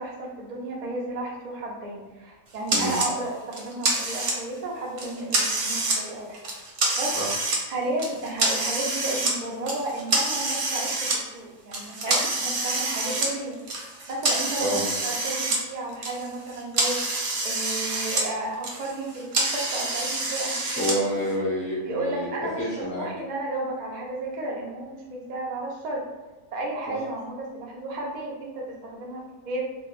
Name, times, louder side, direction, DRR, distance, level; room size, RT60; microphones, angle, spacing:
voice 1, 0.0-6.4 7.0-7.2 7.7-13.6 14.1-17.0 17.4-20.6 21.8-26.0 26.5-29.7, right 2 dB, 90° right, -2 dB, 0.4 m, -33 dB
sound 1, 2.7-3.1 3.5-4.6 5.0-6.0 6.3-7.6 8.0-9.4 9.7-11.2 11.7-15.6 15.9-18.3 18.5-20.9, right 2 dB, 65° right, 0.8 m, -27 dB
voice 2, 20.8-22.3 22.6-23.1 26.9-27.0, right 1 dB, 20° right, -9 dB, 0.5 m, -28 dB
2.3 x 2.1 x 3.0 m, 1.1 s
omnidirectional pair, 1.5 m